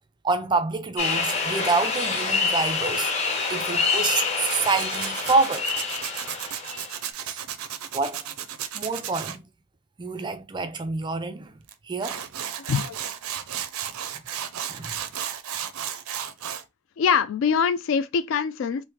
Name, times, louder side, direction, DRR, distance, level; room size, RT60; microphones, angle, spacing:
voice 1, 0.2-3.1 3.5-5.7 7.2-7.4 7.9-8.2 8.7-9.4 10.0-11.5 11.9-12.2 14.7-14.9, right 4 dB, 20° right, 0.3 m, -27 dB
sound 1, 1.0-7.1, left 4 dB, 30° left, 0.8 m, -27 dB
Tools, 4.5-9.4 11.7-11.8 12.0-16.6, right 9 dB, 80° right, 0.5 m, -33 dB
voice 2, 17.0-18.8, left 6 dB, 60° left, 0.3 m, -24 dB
3.1 x 2.5 x 3.5 m
head